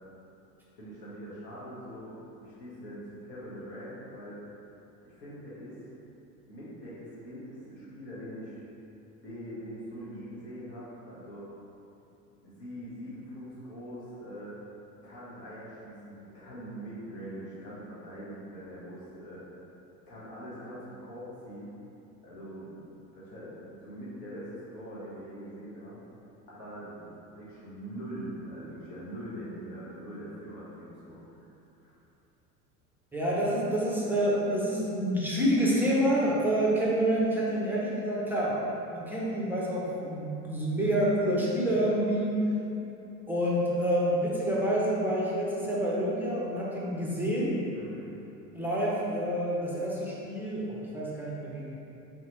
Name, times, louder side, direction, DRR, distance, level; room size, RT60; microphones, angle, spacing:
voice 1, 0.8-4.4 5.0-5.8 6.5-8.6 9.2-11.4 12.4-14.5 15.0-19.4 20.1-21.7 22.2-22.9 23.1-26.0 26.5-31.4 31.8-32.0 47.7-48.1, equal, 75° left, -8 dB, 1.4 m, -43 dB
voice 2, 33.1-38.6 38.9-42.4 43.3-47.6 48.5-51.8, right 1 dB, 5° right, -6 dB, 0.4 m, -28 dB
4.0 x 2.8 x 3.0 m, 2.9 s
figure-of-eight pair, 75°, 49 cm